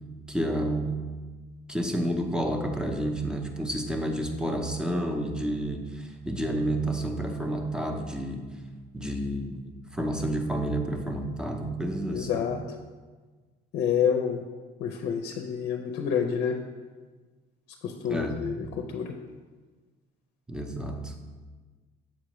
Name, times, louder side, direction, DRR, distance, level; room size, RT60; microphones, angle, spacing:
voice 1, 0.3-1.0 1.7-8.4 8.9-12.5 18.1-18.4 18.6-18.7 20.5-21.1, right 1 dB, 5° right, 4 dB, 0.6 m, -30 dB
voice 2, 12.1-12.6 13.7-14.4 14.8-16.6 17.8-19.1, left 7 dB, 80° left, 3 dB, 0.5 m, -28 dB
7.2 x 4.8 x 3.0 m, 1.4 s
cardioid pair, 110°, 17 cm